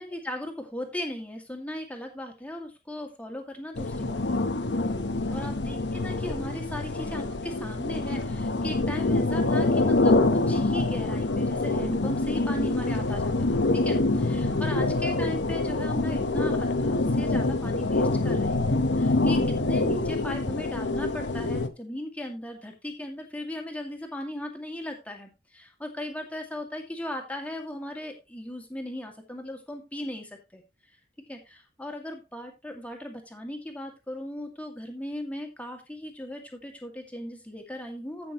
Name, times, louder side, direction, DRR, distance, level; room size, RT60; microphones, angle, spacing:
voice 1, 0.0-4.4 5.3-10.2 10.5-30.6 31.3-38.3, left 1 dB, 10° left, 2 dB, 2.1 m, -37 dB
sound 1, 3.8-21.7, left 2 dB, 90° left, 1.0 m, -26 dB
14.5 x 6.2 x 3.0 m, 0.26 s
head